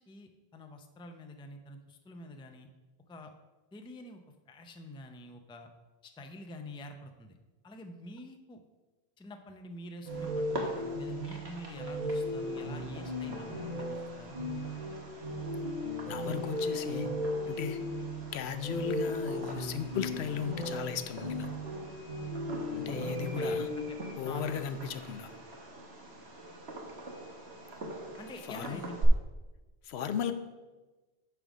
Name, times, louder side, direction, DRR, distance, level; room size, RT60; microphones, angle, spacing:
voice 1, 0.0-2.7 3.1-3.3 3.7-4.2 4.5-5.7 6.0-7.4 7.6-8.6 9.2-14.4 23.1-24.6 28.2-29.0, left 1 dB, 10° left, 5 dB, 0.3 m, -47 dB
sound 1, 10.0-23.8, left 1 dB, 40° right, 1.2 m, -36 dB
Fireworks, 10.1-29.1, right 1 dB, 80° right, 1.5 m, -44 dB
voice 2, 16.1-17.1 17.5-17.8 18.3-21.5 22.8-23.7 24.2-25.3 28.5-28.9 29.8-30.3, left 7 dB, 85° left, 10 dB, 0.9 m, -36 dB
8.9 x 3.5 x 6.1 m, 1.2 s
omnidirectional pair, 1.1 m